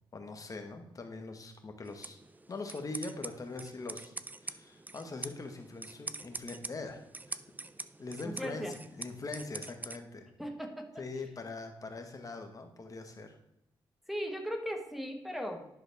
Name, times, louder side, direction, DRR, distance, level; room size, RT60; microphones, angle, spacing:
voice 1, 0.1-2.2 2.5-4.1 4.4-7.0 7.3-7.4 8.0-10.3 11.0-13.4, left 3 dB, 40° left, 5 dB, 1.3 m, -42 dB
sound 1, 1.8-10.0, right 3 dB, 20° right, 0.5 m, -45 dB
voice 2, 8.2-8.7 10.4-10.9 14.1-15.7, equal, ahead, 3 dB, 1.3 m, -37 dB
11.0 x 6.1 x 3.4 m, 0.82 s
cardioid pair, 85°, 9 cm